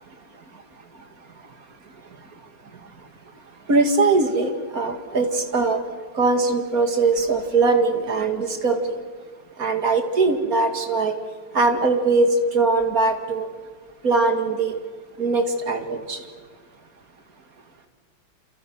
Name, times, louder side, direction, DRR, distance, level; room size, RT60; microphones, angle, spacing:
voice 1, 3.7-5.8 6.1-9.0 9.6-11.1 11.5-13.5 14.0-14.8 15.2-16.2, right 3 dB, 45° right, 6 dB, 2.7 m, -21 dB
29.5 x 28.0 x 6.3 m, 1.5 s
omnidirectional pair, 2.1 m